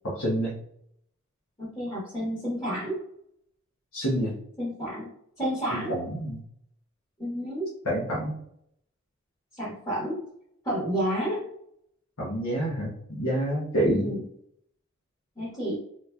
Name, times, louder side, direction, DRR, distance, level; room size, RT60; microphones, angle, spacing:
voice 1, 0.0-0.5 3.9-4.3 5.7-6.4 7.8-8.4 12.2-14.1, right 1 dB, 90° left, -7 dB, 1.0 m, -27 dB
voice 2, 1.6-3.0 4.6-5.1 5.4-5.9 7.2-7.7 9.5-10.2 10.6-11.4 13.8-14.2 15.4-15.8, equal, 15° left, -9 dB, 1.3 m, -30 dB
4.1 x 2.9 x 2.2 m, 0.71 s
head